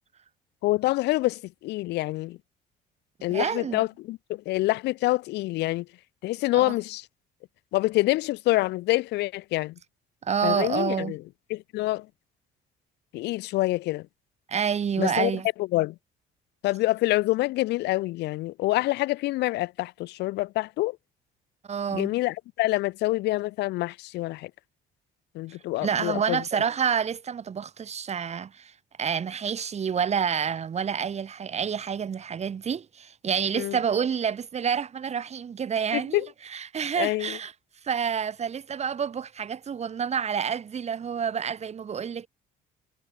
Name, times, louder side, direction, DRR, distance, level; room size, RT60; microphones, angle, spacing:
voice 1, 0.6-2.4 3.2-5.8 6.2-7.0 7.7-9.7 10.4-11.2 11.5-12.1 13.1-14.1 15.0-15.3 15.6-15.9 16.6-21.0 21.9-24.5 25.3-26.4 33.6-33.8 35.9-36.3 37.0-37.4, left 18 dB, 85° left, 6.8 m, -26 dB
voice 2, 3.3-3.8 6.5-6.7 10.2-11.2 14.5-15.5 21.7-22.1 25.8-28.7 29.0-36.2 36.5-37.5 37.8-42.3, right 7 dB, 40° right, 5.3 m, -28 dB
cardioid pair, 110°, 17 cm